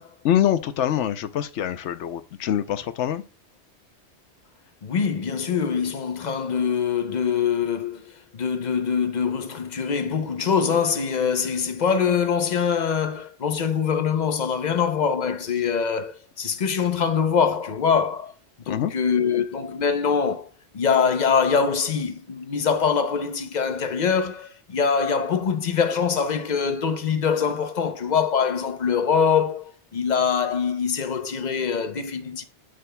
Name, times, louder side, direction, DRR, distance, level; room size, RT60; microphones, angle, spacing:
voice 1, 0.2-3.2 18.7-18.9, left 10 dB, 90° left, 1.0 m, -24 dB
voice 2, 4.8-18.3 18.7-20.5 20.7-32.4, left 6 dB, 45° left, 0.8 m, -24 dB
11.0 x 5.0 x 2.2 m
omnidirectional pair, 1.2 m